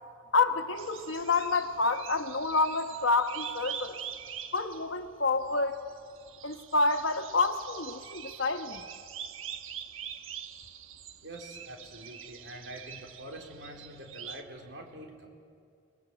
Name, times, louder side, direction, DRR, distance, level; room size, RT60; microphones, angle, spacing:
voice 1, 0.3-4.0 4.5-5.8 6.4-8.8, left 3 dB, 70° left, 1.4 m, -28 dB
sound 1, 0.8-14.4, right 8 dB, 85° right, 1.2 m, -44 dB
voice 2, 11.2-15.3, right 1 dB, 60° right, 3.9 m, -45 dB
30.0 x 20.5 x 8.1 m
head